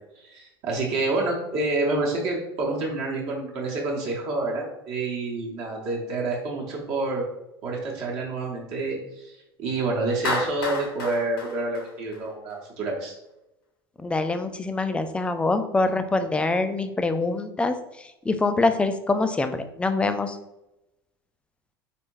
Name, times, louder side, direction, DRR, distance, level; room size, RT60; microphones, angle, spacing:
voice 1, 0.2-7.2 7.6-9.3 9.6-13.1, right 2 dB, 50° right, -2 dB, 1.0 m, -28 dB
Clapping, 10.2-12.5, left 3 dB, 65° left, 0.9 m, -31 dB
voice 2, 14.0-17.8 18.3-20.4, left 3 dB, 10° left, 9 dB, 0.4 m, -24 dB
4.2 x 3.3 x 3.1 m, 0.90 s
figure-of-eight pair, 70°, 13 cm